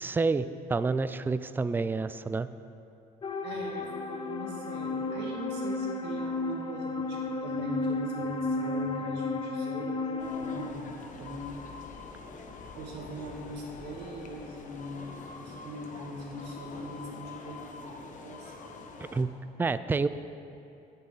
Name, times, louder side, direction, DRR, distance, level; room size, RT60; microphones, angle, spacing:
voice 1, 0.0-2.5 19.1-19.3 19.6-20.1, right 4 dB, 10° right, 13 dB, 0.3 m, -28 dB
sound 1, 3.2-10.7, left 3 dB, 30° left, 0.6 m, -33 dB
voice 2, 3.4-11.5 12.7-18.9, equal, 80° right, -2 dB, 2.1 m, -41 dB
sound 2, 10.2-19.2, left 4 dB, 50° left, 1.0 m, -45 dB
17.0 x 6.7 x 4.0 m, 2.7 s
cardioid pair, 110°, 17 cm